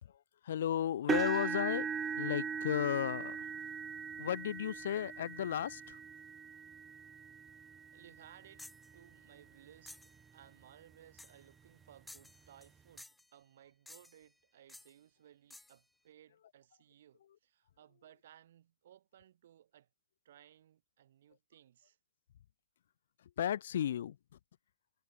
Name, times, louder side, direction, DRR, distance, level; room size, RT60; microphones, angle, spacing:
voice 1, 0.0-1.9 2.2-3.5 4.2-6.0 23.2-24.2, left 10 dB, 65° left, 0.9 m, -34 dB
sound 1, 1.1-9.1 9.7-10.0 10.4-10.5 11.9-12.0, right 7 dB, 20° right, 0.5 m, -40 dB
voice 2, 7.9-19.9 20.2-22.0, right 11 dB, 65° right, 6.1 m, -61 dB
sound 2, 8.6-8.9 9.9-10.2 11.2-11.5 12.1-12.7 13.0-13.3 13.9-14.3 14.7-14.9 15.5-15.8, left 2 dB, 5° left, 0.8 m, -54 dB
hypercardioid pair, 110°, 0 cm